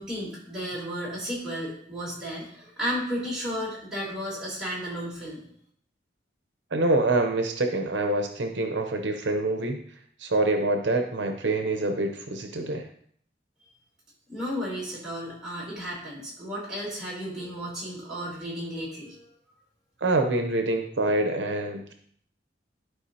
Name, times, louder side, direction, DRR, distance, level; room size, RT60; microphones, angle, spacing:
voice 1, 0.0-5.4 13.6-13.7 14.3-19.3, equal, 5° right, -8 dB, 3.1 m, -33 dB
voice 2, 6.7-9.8 10.2-12.9 20.0-21.9, right 2 dB, 70° right, 5 dB, 0.7 m, -26 dB
11.5 x 4.8 x 2.8 m, 0.63 s
head